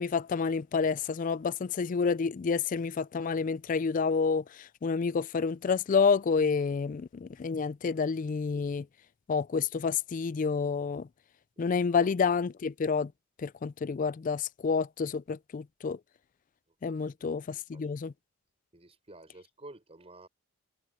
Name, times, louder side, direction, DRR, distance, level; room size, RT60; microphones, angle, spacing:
voice 1, 0.0-8.9 9.3-11.1 11.6-13.1 13.4-16.0 16.8-18.1, left 5 dB, 40° left, 0.3 m, -29 dB
voice 2, 11.6-12.1 16.9-17.0 17.7-18.0 18.7-20.3, right 2 dB, 30° right, 6.1 m, -51 dB
head